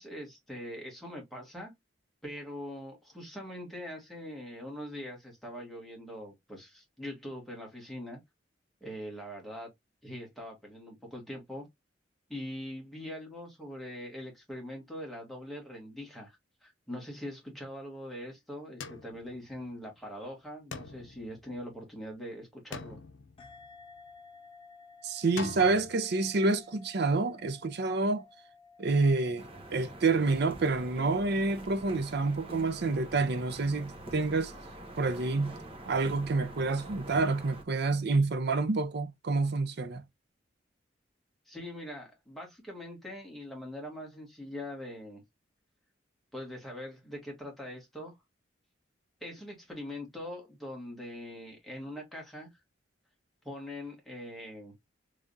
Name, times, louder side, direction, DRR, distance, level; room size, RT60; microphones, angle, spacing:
voice 1, 0.0-1.7 2.2-8.2 8.8-9.7 10.0-11.7 12.3-23.0 41.5-45.2 46.3-48.1 49.2-52.5 53.4-54.7, left 1 dB, ahead, 1.7 m, -42 dB
sound 1, 18.8-20.0 20.7-22.1 22.7-24.1 25.4-25.9, left 4 dB, 80° left, 0.6 m, -44 dB
sound 2, 23.4-32.4, left 4 dB, 30° left, 1.0 m, -56 dB
voice 2, 25.0-28.2 28.8-34.5 35.0-35.5 35.9-40.0, right 3 dB, 60° right, 0.6 m, -28 dB
sound 3, 29.4-37.6, right 1 dB, 30° right, 1.1 m, -46 dB
3.5 x 3.3 x 2.6 m
head